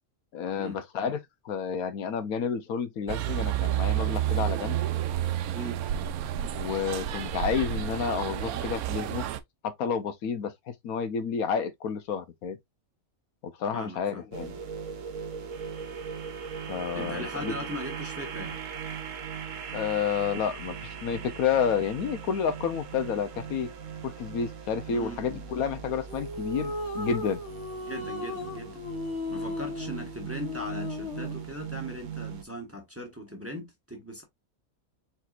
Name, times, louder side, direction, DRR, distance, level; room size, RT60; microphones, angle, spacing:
voice 1, 0.3-1.2 1.4-4.8 6.6-9.3 9.6-10.5 10.8-12.6 13.4-14.5 16.7-17.6 19.7-23.7 24.0-27.4, left 7 dB, 85° left, 1.2 m, -30 dB
sound 1, 3.1-9.4, right 12 dB, 90° right, 1.1 m, -30 dB
voice 2, 5.5-5.8 13.7-14.2 16.9-18.6 24.9-25.4 27.8-28.8 29.3-34.2, equal, 10° right, 1.3 m, -39 dB
sound 2, 14.3-32.4, right 7 dB, 65° right, 1.2 m, -39 dB
sound 3, 26.1-31.4, left 2 dB, 55° left, 1.3 m, -36 dB
4.3 x 4.2 x 2.4 m
omnidirectional pair, 1.5 m